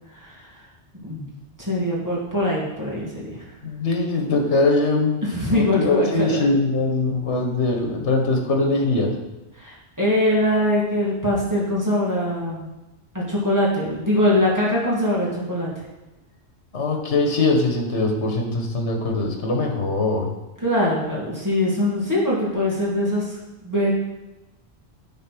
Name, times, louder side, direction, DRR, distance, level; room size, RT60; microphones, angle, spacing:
voice 1, 0.1-0.6 1.0-1.3 1.6-3.4 5.2-6.4 9.5-12.7 13.1-15.7 20.6-24.0, left 1 dB, 15° right, -6 dB, 2.4 m, -22 dB
voice 2, 3.6-5.2 5.5-9.1 16.7-20.3, left 2 dB, 80° left, 3 dB, 1.6 m, -22 dB
9.5 x 4.3 x 6.0 m, 1.0 s
omnidirectional pair, 1.2 m